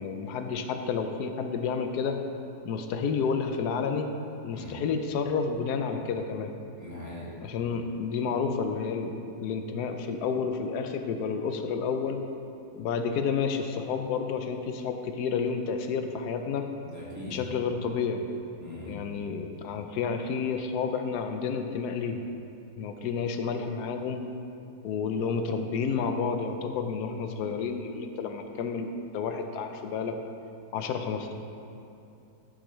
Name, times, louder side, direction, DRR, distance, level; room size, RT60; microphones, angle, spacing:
voice 1, 0.0-2.2 2.6-4.1 4.4-6.5 7.4-12.2 12.7-16.7 17.3-18.3 18.9-22.2 22.8-24.2 24.8-28.9 29.1-30.2 30.7-31.3, left 5 dB, 70° left, 6 dB, 1.0 m, -30 dB
voice 2, 6.8-7.3 16.8-17.4 18.6-18.9, left 2 dB, 10° right, -8 dB, 1.7 m, -41 dB
12.5 x 7.7 x 3.1 m, 2.7 s
omnidirectional pair, 2.0 m